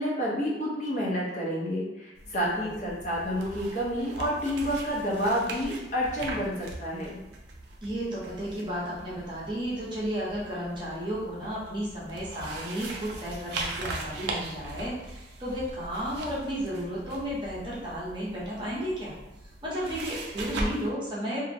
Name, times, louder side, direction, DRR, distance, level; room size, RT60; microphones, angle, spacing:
voice 1, 0.0-7.2, equal, 45° left, -5 dB, 0.6 m, -29 dB
sound 1, 2.2-20.9, right 2 dB, 70° right, 0.4 m, -40 dB
voice 2, 2.3-2.7 7.8-19.1 19.6-21.5, equal, 25° right, -6 dB, 0.6 m, -33 dB
2.5 x 2.0 x 2.6 m, 0.97 s
head